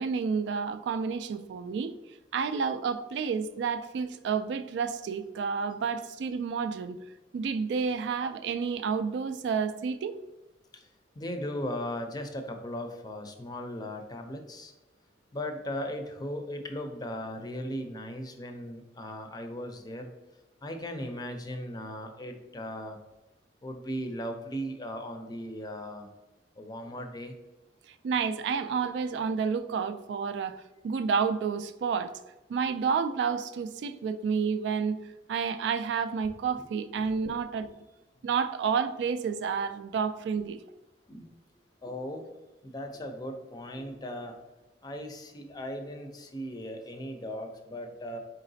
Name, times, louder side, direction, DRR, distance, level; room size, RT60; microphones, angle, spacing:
voice 1, 0.0-1.9 2.3-7.0 7.3-10.1 28.0-32.1 32.5-35.0 35.3-37.7 38.2-40.6, right 6 dB, 75° right, 10 dB, 0.3 m, -30 dB
voice 2, 11.2-14.7 15.3-20.1 20.6-23.0 23.6-26.1 26.6-27.3 41.1-41.3 41.8-42.3 42.6-44.4 44.8-48.2, equal, 25° left, 5 dB, 0.5 m, -37 dB
4.1 x 3.9 x 2.6 m, 1.1 s
head